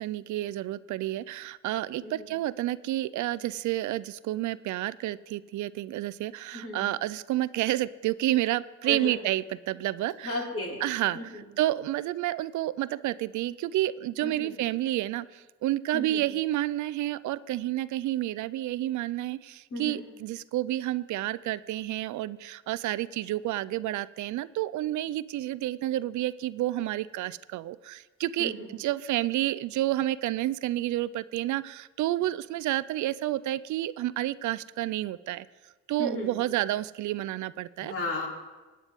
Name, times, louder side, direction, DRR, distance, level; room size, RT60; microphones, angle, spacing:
voice 1, 0.0-10.4 10.8-35.5 35.9-37.9, right 15 dB, 75° right, 17 dB, 0.4 m, -30 dB
voice 2, 2.0-2.3 6.5-6.8 8.8-9.2 10.2-10.8 11.1-11.5 14.2-14.5 15.9-16.2 19.7-20.0 28.4-28.7 36.0-36.3 37.8-38.3, left 1 dB, 45° left, -2 dB, 3.2 m, -34 dB
17.0 x 9.5 x 3.6 m, 1.2 s
cardioid pair, 90°, 30 cm